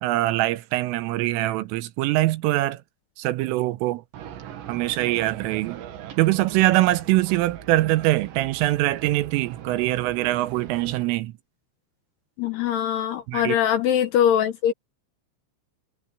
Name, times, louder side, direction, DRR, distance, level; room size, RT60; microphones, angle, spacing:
voice 1, 0.0-2.8 3.2-4.0 4.7-5.8 6.2-11.3 13.3-13.6, right 17 dB, 85° right, 3.4 m, -23 dB
sound 1, 4.1-11.0, right 10 dB, 65° right, 4.0 m, -40 dB
voice 2, 12.4-14.7, left 10 dB, 70° left, 2.7 m, -22 dB
omnidirectional pair, 5.9 m